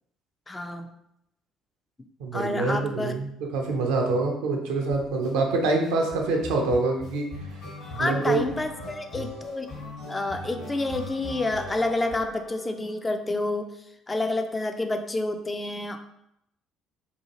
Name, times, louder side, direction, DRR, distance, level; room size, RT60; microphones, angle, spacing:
voice 1, 0.5-0.9 2.3-3.1 8.0-9.7 10.1-13.7 14.1-16.0, left 2 dB, 20° left, 6 dB, 0.3 m, -29 dB
voice 2, 2.2-7.3 8.0-8.4, right 3 dB, 65° right, 1 dB, 0.5 m, -25 dB
sound 1, 4.9-5.3 5.8-13.0, left 1 dB, 60° left, 1.2 m, -40 dB
2.7 x 2.3 x 2.8 m, 0.79 s
figure-of-eight pair, 50°, 0 cm